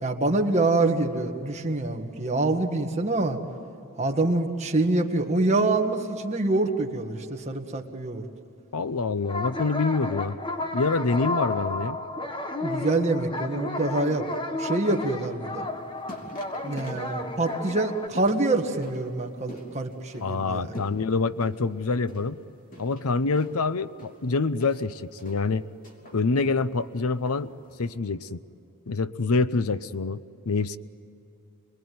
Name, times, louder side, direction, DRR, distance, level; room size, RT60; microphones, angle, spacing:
voice 1, 0.0-3.4 4.0-8.2 12.6-14.2 14.6-15.7 16.6-20.7, right 2 dB, 30° right, 3 dB, 1.7 m, -25 dB
voice 2, 8.7-10.4 10.7-12.0 20.2-22.4 22.8-25.7 26.1-27.5 27.8-28.4 28.9-30.8, left 3 dB, 75° left, 14 dB, 0.7 m, -26 dB
sound 1, 9.2-18.1, left 2 dB, 20° left, 1.2 m, -32 dB
sound 2, 15.6-27.9, equal, 40° left, 3.4 m, -47 dB
28.0 x 20.5 x 9.5 m, 2.8 s
head